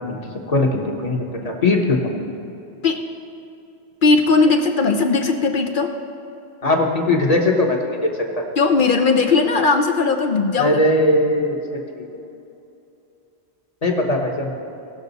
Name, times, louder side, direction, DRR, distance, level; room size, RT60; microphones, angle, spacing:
voice 1, 0.5-2.1 6.6-7.8 8.3-8.4 10.6-12.1 13.8-14.5, left 2 dB, 35° left, 1 dB, 1.1 m, -19 dB
voice 2, 4.0-5.9 8.6-10.8, left 4 dB, 55° left, 5 dB, 0.7 m, -18 dB
17.5 x 6.3 x 4.0 m, 2.7 s
omnidirectional pair, 1.1 m